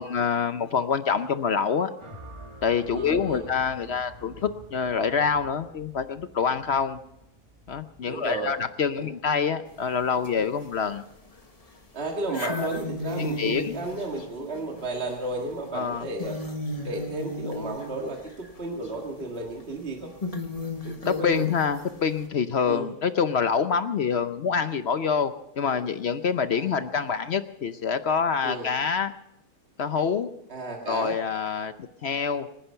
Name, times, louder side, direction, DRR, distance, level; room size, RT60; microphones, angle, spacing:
voice 1, 0.0-1.9 2.6-7.0 7.7-11.0 12.4-12.7 13.2-13.7 15.7-16.0 21.0-29.1 29.8-30.3 30.9-31.7 32.0-32.5, left 6 dB, 55° left, 11 dB, 0.8 m, -26 dB
sound 1, 2.0-10.3, right 1 dB, 20° right, 1.3 m, -49 dB
voice 2, 2.9-3.5 8.0-8.6 8.9-9.1 11.9-16.4 16.8-20.1 20.8-21.5 22.7-22.9 26.5-26.7 28.4-28.7 30.5-31.2, right 2 dB, 40° right, 0 dB, 2.1 m, -33 dB
sound 2, 9.7-9.8 10.2-11.0 11.3-11.4 12.2-18.6 18.8-18.9 19.6-19.7 20.2-22.2, left 2 dB, 25° left, 1.4 m, -35 dB
25.0 x 10.0 x 5.7 m, 0.82 s
omnidirectional pair, 1.7 m